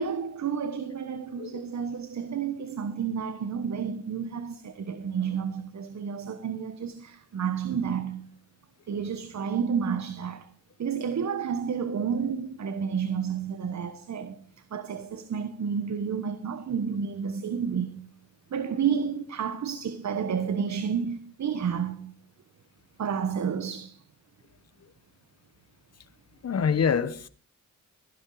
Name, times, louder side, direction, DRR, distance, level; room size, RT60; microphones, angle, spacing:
voice 1, 0.0-8.3 8.9-10.5 10.8-14.4 14.7-18.1 18.5-22.1 23.0-24.0, right 7 dB, 60° right, 1.3 m, -30 dB
voice 2, 26.4-27.3, left 6 dB, 50° left, 1.4 m, -25 dB
16.0 x 11.5 x 4.9 m
cardioid pair, 90°, 32 cm